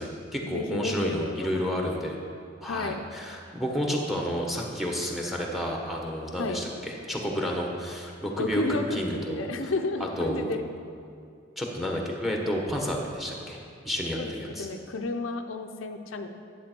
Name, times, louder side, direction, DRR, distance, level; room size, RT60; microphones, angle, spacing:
voice 1, 0.0-2.2 2.6-9.4 10.2-10.5 11.6-13.6 13.8-14.7, equal, ahead, 0 dB, 1.1 m, -30 dB
voice 2, 0.5-1.9 2.6-3.0 6.4-6.6 8.4-10.6 14.2-16.3, left 3 dB, 90° left, 6 dB, 0.6 m, -32 dB
10.5 x 7.6 x 4.5 m, 2.5 s
head